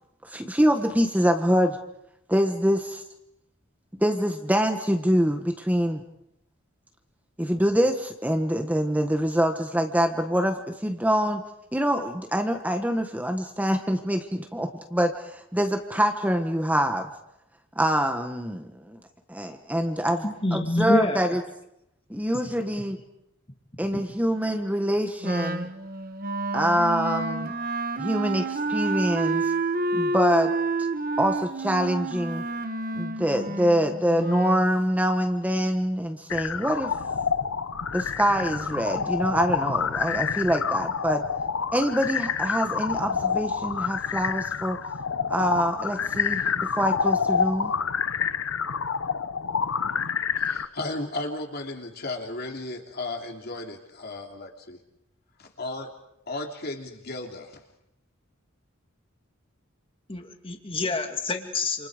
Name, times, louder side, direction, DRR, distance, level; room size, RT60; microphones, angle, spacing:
voice 1, 0.2-1.8 2.3-3.0 4.0-6.0 7.4-11.4 11.7-17.1 17.7-19.0 19.3-21.4 22.1-23.0 23.8-25.7 26.5-27.5 28.0-29.5 29.9-30.5 31.2-32.4 32.9-36.9 37.9-41.2 41.7-44.8 45.3-47.7, equal, 10° right, 5 dB, 1.4 m, -25 dB
voice 2, 20.2-21.2 23.9-24.0 60.1-61.9, left 2 dB, 25° left, 5 dB, 2.5 m, -27 dB
Wind instrument woodwind instrument, 25.2-34.7, right 2 dB, 45° right, 1.3 m, -29 dB
sound 1, 36.3-50.7, left 6 dB, 80° left, 0.9 m, -28 dB
voice 3, 50.4-54.8 55.4-55.9 56.3-57.6, left 2 dB, 50° left, 2 dB, 3.3 m, -35 dB
28.5 x 28.5 x 5.1 m, 0.81 s
head